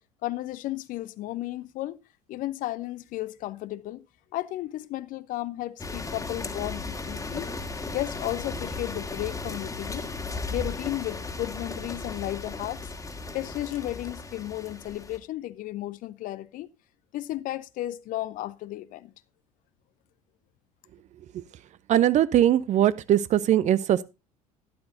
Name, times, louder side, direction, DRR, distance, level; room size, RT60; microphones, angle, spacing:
voice 1, 0.2-2.0 2.3-4.0 4.3-7.5 7.9-10.1 10.5-12.9 13.3-16.7 17.1-19.1, left 15 dB, 45° left, 0.6 m, -34 dB
sound 1, 5.8-15.2, left 3 dB, 15° left, 1.8 m, -36 dB
voice 2, 21.9-24.0, right 11 dB, 40° right, 0.6 m, -21 dB
12.0 x 11.5 x 2.7 m
figure-of-eight pair, 60°, 19 cm